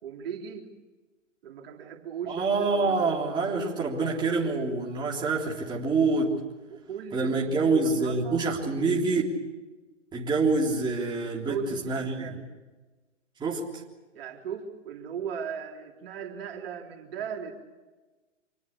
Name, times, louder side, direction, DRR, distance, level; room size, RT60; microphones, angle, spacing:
voice 1, 0.0-0.7 1.4-3.2 6.7-8.5 11.4-12.5 14.1-17.5, right 7 dB, 50° right, 1 dB, 3.6 m, -37 dB
voice 2, 2.3-6.4 7.1-9.2 10.1-12.4 13.4-13.8, right 3 dB, 10° right, -3 dB, 3.5 m, -26 dB
26.0 x 19.5 x 8.5 m, 1.2 s
hypercardioid pair, 130°, 37 cm